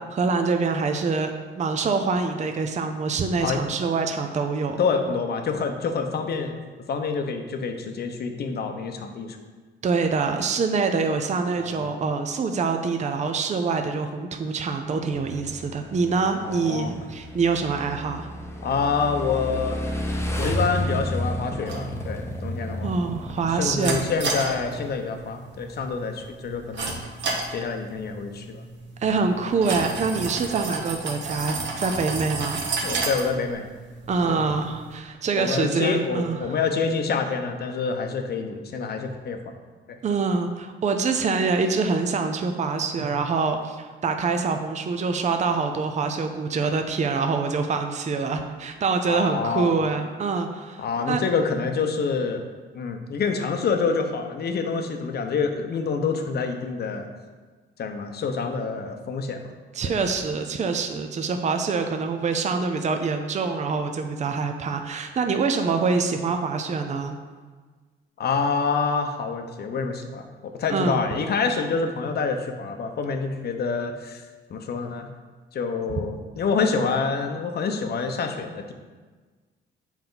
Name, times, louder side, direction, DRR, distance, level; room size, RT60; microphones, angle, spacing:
voice 1, 0.1-4.8 9.8-18.3 22.8-24.1 29.0-32.6 34.1-36.6 40.0-51.2 59.7-67.2 70.7-71.0, right 4 dB, 35° right, 6 dB, 0.6 m, -25 dB
voice 2, 4.8-6.6 6.9-9.4 11.6-11.9 16.4-16.9 18.6-19.8 20.4-23.0 23.5-27.0 27.5-28.6 32.8-33.6 34.3-34.4 35.4-39.4 39.9-40.0 49.1-49.8 50.8-52.4 52.7-57.1 57.8-59.4 59.8-59.9 68.2-74.2 74.5-75.1 75.5-78.7, left 5 dB, 55° left, 5 dB, 0.8 m, -27 dB
Motorcycle / Engine, 15.1-24.9, equal, 15° left, 0.8 m, -32 dB
sound 1, 21.7-35.0, right 3 dB, 65° right, 1.1 m, -33 dB
7.2 x 4.4 x 3.9 m, 1.4 s
cardioid pair, 90°, 20 cm